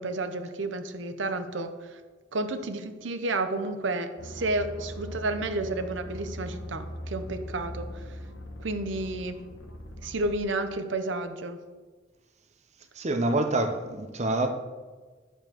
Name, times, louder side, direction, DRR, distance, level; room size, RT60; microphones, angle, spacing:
voice 1, 0.0-2.0 2.3-8.2 8.6-9.4 10.0-11.6, right 2 dB, 75° right, 9 dB, 0.7 m, -31 dB
sound 1, 4.2-10.4, equal, 75° left, 0.8 m, -40 dB
voice 2, 13.0-14.5, right 2 dB, 35° right, 7 dB, 0.6 m, -26 dB
10.0 x 6.8 x 3.0 m, 1.4 s
head